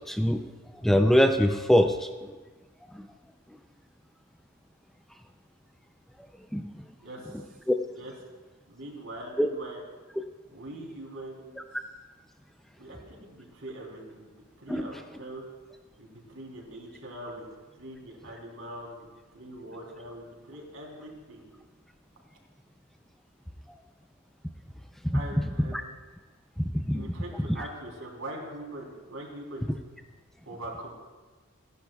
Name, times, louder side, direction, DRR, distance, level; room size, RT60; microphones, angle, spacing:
voice 1, 0.1-0.4 0.8-2.1 6.5-6.7 7.7-7.8 9.4-9.5 14.7-14.9 25.7-25.8 26.6-27.0, equal, ahead, 6 dB, 0.4 m, -22 dB
voice 2, 7.0-7.6 8.0-8.1 8.7-9.8 10.5-11.6 12.8-14.3 14.6-15.4 16.0-17.5 17.7-19.1 19.3-21.5 25.1-25.8 26.9-29.7 30.4-30.9, right 1 dB, 70° right, -2 dB, 3.4 m, -42 dB
28.5 x 10.5 x 2.3 m, 1.3 s
head